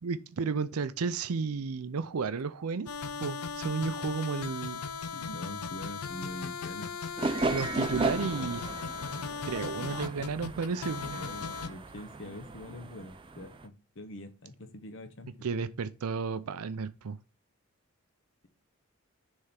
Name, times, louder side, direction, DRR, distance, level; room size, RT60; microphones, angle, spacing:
voice 1, 0.0-2.9 3.2-4.8 7.5-8.6 9.2-11.2 15.4-17.2, right 5 dB, 85° right, 0.5 m, -33 dB
sound 1, 2.9-11.7, left 5 dB, 90° left, 0.6 m, -37 dB
voice 2, 5.1-6.9 11.1-15.4, left 1 dB, 55° left, 0.9 m, -44 dB
sound 2, 7.2-13.7, right 3 dB, 20° right, 0.4 m, -36 dB
6.4 x 3.6 x 5.7 m
head